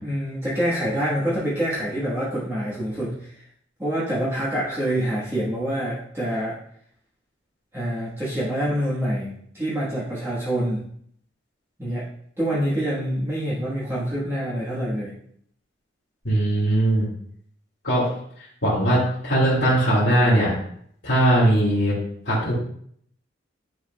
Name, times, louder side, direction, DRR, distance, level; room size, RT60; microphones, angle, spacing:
voice 1, 0.0-3.3 3.8-6.6 7.7-10.8 11.8-12.1 12.4-15.1, equal, 15° right, -9 dB, 1.3 m, -26 dB
voice 2, 16.2-17.1 17.8-18.1 18.6-20.5 21.0-21.9 22.3-22.5, right 1 dB, 65° left, -10 dB, 2.1 m, -19 dB
9.5 x 4.7 x 2.2 m, 0.64 s
head